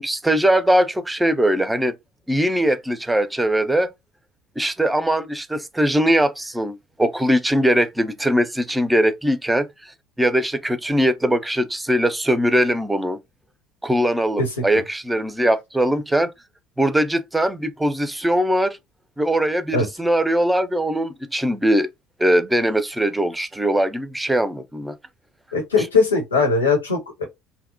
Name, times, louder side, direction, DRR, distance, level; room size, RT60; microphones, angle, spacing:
voice 1, 0.0-2.0 2.3-3.9 4.6-9.9 10.2-13.2 13.8-16.3 16.8-18.8 19.2-21.9 22.2-24.9 25.8-25.9, equal, 10° right, 0.4 m, -21 dB
voice 2, 25.5-27.2, left 4 dB, 90° left, 0.7 m, -19 dB
2.6 x 2.0 x 2.4 m
hypercardioid pair, 60°, 0 cm